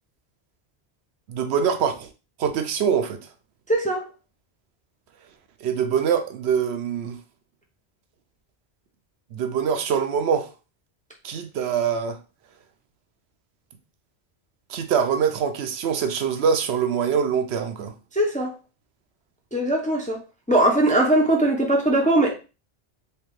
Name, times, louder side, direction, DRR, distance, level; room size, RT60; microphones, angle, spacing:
voice 1, 1.3-2.1 2.4-3.2 5.6-7.2 9.3-10.5 11.2-12.2 14.7-17.9, right 7 dB, 80° right, 0.8 m, -24 dB
voice 2, 3.7-4.1 18.1-18.5 19.5-20.2 20.5-22.4, right 1 dB, 10° left, 0.4 m, -20 dB
3.4 x 3.0 x 3.0 m
omnidirectional pair, 1.1 m